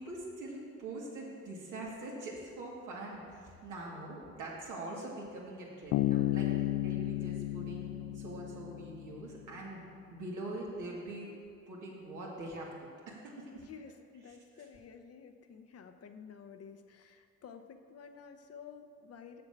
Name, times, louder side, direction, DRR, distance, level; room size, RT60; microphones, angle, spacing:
voice 1, 0.0-6.5 6.8-9.8 10.1-11.3 11.7-13.5 14.3-14.7, right 2 dB, 80° right, -3 dB, 2.4 m, -43 dB
Bass guitar, 5.9-9.4, left 15 dB, 80° left, 0.5 m, -33 dB
voice 2, 13.5-19.4, left 6 dB, 55° left, 6 dB, 0.8 m, -51 dB
7.1 x 6.8 x 7.1 m, 2.3 s
cardioid pair, 90°, 30 cm